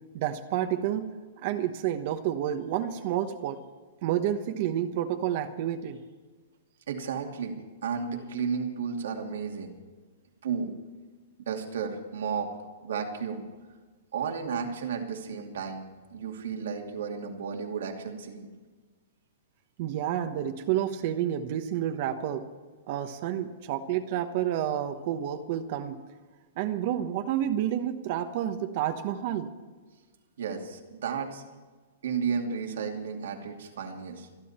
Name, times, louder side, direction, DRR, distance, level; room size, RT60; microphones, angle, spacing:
voice 1, 0.1-1.1 1.4-3.6 4.0-6.0 19.8-22.5 22.9-26.0 26.6-29.5, right 11 dB, 45° right, 8 dB, 1.1 m, -29 dB
voice 2, 6.9-9.7 10.4-10.7 11.5-12.5 12.8-13.4 14.1-18.5 30.4-31.4 32.0-34.3, right 6 dB, 75° right, 3 dB, 2.6 m, -33 dB
28.5 x 11.0 x 4.3 m, 1.4 s
hypercardioid pair, 160°, 0 cm